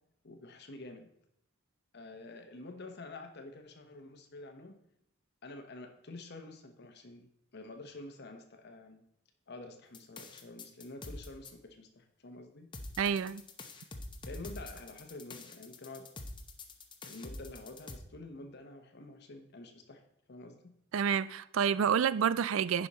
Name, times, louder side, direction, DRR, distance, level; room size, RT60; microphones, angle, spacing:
voice 1, 0.2-1.1 1.9-4.8 5.4-7.3 7.5-9.0 9.5-12.7 14.3-16.1 17.0-20.0 20.3-20.7, left 2 dB, 55° left, 1.0 m, -48 dB
sound 1, 9.9-11.5 12.7-18.0, left 2 dB, 25° left, 0.8 m, -45 dB
voice 2, 13.0-13.4 20.9-22.9, right 7 dB, 75° right, 0.4 m, -29 dB
10.0 x 5.5 x 4.2 m
head